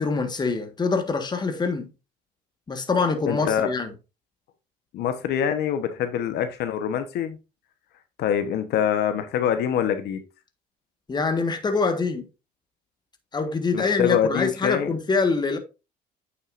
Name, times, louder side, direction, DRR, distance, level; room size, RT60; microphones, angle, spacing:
voice 1, 0.0-1.9 2.7-3.9 11.1-12.3 13.3-15.6, left 4 dB, 25° left, 1.5 m, -24 dB
voice 2, 3.2-3.7 4.9-7.4 8.2-10.2 13.7-15.0, left 9 dB, 75° left, 1.1 m, -25 dB
8.8 x 6.6 x 2.6 m
cardioid pair, 110°, 17 cm